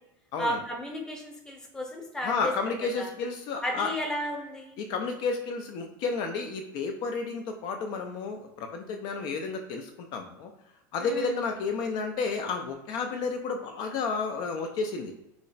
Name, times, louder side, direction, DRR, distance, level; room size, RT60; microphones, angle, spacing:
voice 1, 0.4-2.5 3.0-3.1 3.6-4.8 11.0-11.4, equal, 5° left, 1 dB, 0.7 m, -33 dB
voice 2, 2.2-3.9 4.8-10.5 10.9-15.1, left 4 dB, 50° left, 4 dB, 0.4 m, -31 dB
3.2 x 2.0 x 3.9 m, 0.87 s
supercardioid pair, 140°, 10 cm